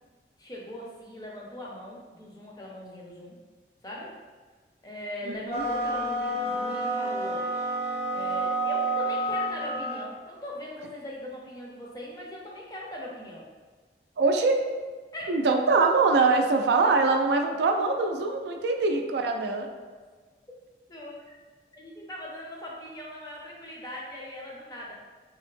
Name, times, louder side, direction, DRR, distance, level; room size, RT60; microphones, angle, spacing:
voice 1, 0.4-3.3 3.8-4.2 4.8-7.4 8.1-13.5 15.1-15.4 20.9-21.4 21.7-24.9, left 1 dB, 20° left, -3 dB, 0.5 m, -40 dB
voice 2, 5.2-5.6 14.2-14.6 15.3-19.7, right 3 dB, 75° right, 4 dB, 0.3 m, -23 dB
sound 1, 5.5-10.1, right 1 dB, 35° right, 0.6 m, -29 dB
3.4 x 2.0 x 3.2 m, 1.4 s
head